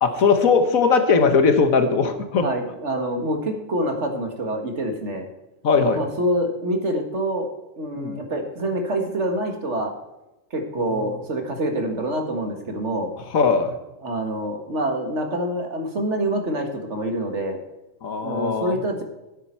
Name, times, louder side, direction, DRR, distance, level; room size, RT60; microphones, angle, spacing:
voice 1, 0.0-2.5 5.6-6.1 8.0-8.2 10.8-11.0 13.3-13.8 18.0-18.8, left 5 dB, 85° left, 8 dB, 1.7 m, -19 dB
voice 2, 2.4-5.3 5.9-7.5 7.8-9.9 10.5-13.1 14.0-17.6 18.2-19.0, right 1 dB, 60° right, 4 dB, 2.0 m, -26 dB
12.5 x 9.1 x 4.5 m, 1.0 s
omnidirectional pair, 1.4 m